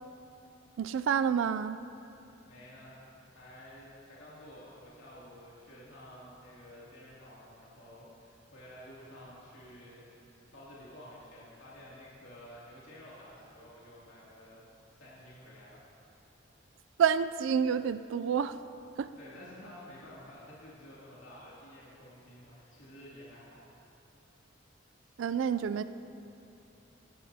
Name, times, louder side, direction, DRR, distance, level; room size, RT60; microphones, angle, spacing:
voice 1, 0.8-1.8 17.0-18.6 19.0-19.1 25.2-25.8, right 7 dB, 80° right, 13 dB, 0.3 m, -28 dB
voice 2, 2.5-3.0 3.3-14.6 14.9-15.9 19.2-23.6, left 1 dB, 90° left, -7 dB, 2.6 m, -51 dB
16.5 x 11.5 x 2.8 m, 2.9 s
head